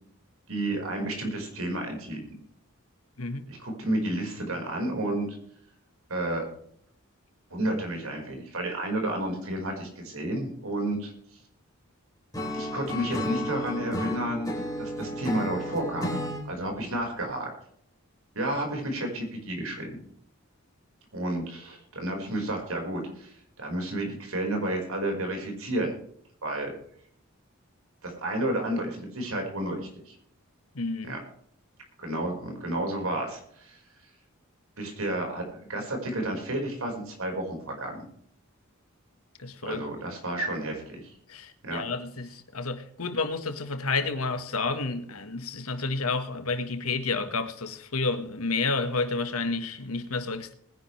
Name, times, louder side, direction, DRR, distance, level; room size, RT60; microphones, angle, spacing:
voice 1, 0.5-2.3 3.5-5.3 6.1-6.5 7.5-11.1 12.5-16.2 16.4-17.5 18.3-20.0 21.1-25.9 26.4-26.7 28.0-30.2 31.0-31.2 32.0-33.8 34.8-38.0 39.6-41.1 41.6-41.8, right 1 dB, 75° right, 5.2 m, -31 dB
voice 2, 3.2-3.5 30.7-31.2 39.4-39.9 41.3-50.5, left 3 dB, 85° left, 1.7 m, -30 dB
Acoustic guitar / Strum, 12.3-16.4, equal, 15° left, 3.8 m, -32 dB
20.5 x 10.5 x 3.4 m
head